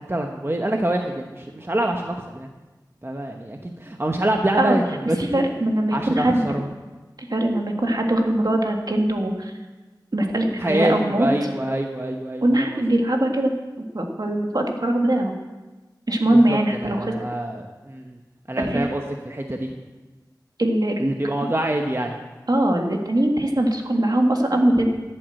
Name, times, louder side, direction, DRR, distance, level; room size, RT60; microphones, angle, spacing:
voice 1, 0.1-2.5 3.0-5.4 5.9-6.7 10.6-12.8 16.3-18.2 18.5-19.7 21.0-22.2, right 1 dB, 30° right, 3 dB, 1.0 m, -26 dB
voice 2, 5.2-6.4 7.3-9.5 10.1-11.3 12.4-13.5 13.9-15.3 16.1-17.1 18.6-18.9 20.6-21.0 22.5-24.9, right 1 dB, 60° right, 2 dB, 1.9 m, -21 dB
13.5 x 7.9 x 7.7 m, 1.2 s
wide cardioid pair, 45°, 8 cm